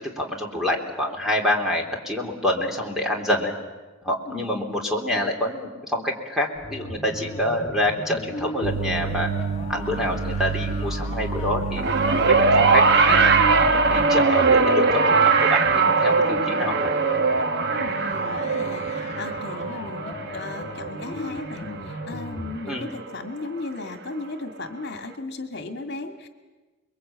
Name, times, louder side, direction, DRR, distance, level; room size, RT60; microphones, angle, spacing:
voice 1, 0.0-3.5 4.0-9.3 9.7-11.8 12.2-13.4 13.7-16.8 22.7-22.9, left 1 dB, ahead, 1 dB, 3.5 m, -26 dB
sound 1, 6.5-22.6, left 2 dB, 35° left, 1.7 m, -36 dB
sound 2, 8.6-14.1, right 4 dB, 85° right, 1.0 m, -29 dB
sound 3, 11.8-22.2 23.2-23.3, right 4 dB, 55° right, 1.2 m, -21 dB
voice 2, 17.7-26.3, left 2 dB, 55° left, 5 dB, 2.2 m, -36 dB
30.0 x 22.0 x 8.8 m, 1.2 s
head